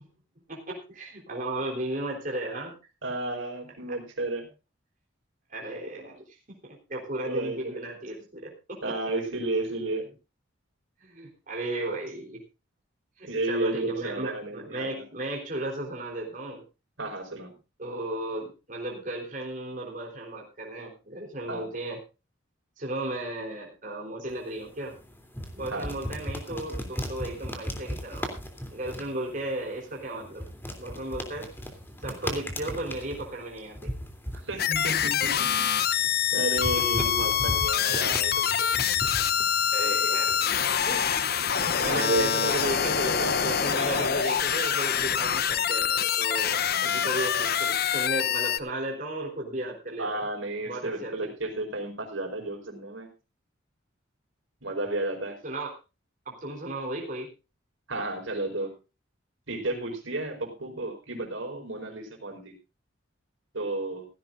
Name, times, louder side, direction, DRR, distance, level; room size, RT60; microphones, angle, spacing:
voice 1, 0.5-2.8 3.9-4.0 5.5-9.0 11.0-12.4 13.2-16.6 17.8-22.0 22.8-25.0 25.5-28.3 28.7-30.4 30.8-31.5 32.0-33.9 36.7-37.1 39.7-40.4 40.9-41.3 41.8-50.2 50.6-51.3 55.4-55.7 56.3-57.3, right 1 dB, 40° right, -1 dB, 3.7 m, -35 dB
voice 2, 3.0-4.5 7.2-7.9 8.8-10.1 13.3-15.0 17.0-17.6 21.5-21.7 25.7-25.9 34.3-35.7 36.3-38.7 41.9-42.6 43.2-43.6 50.0-53.1 54.6-55.4 57.9-58.7 59.5-62.5 63.5-64.1, right 2 dB, 75° right, 3 dB, 4.8 m, -32 dB
sound 1, 24.3-42.5, equal, 10° left, 3.0 m, -38 dB
sound 2, 34.6-48.6, left 8 dB, 50° left, 0.8 m, -25 dB
17.0 x 15.5 x 2.5 m, 0.30 s
head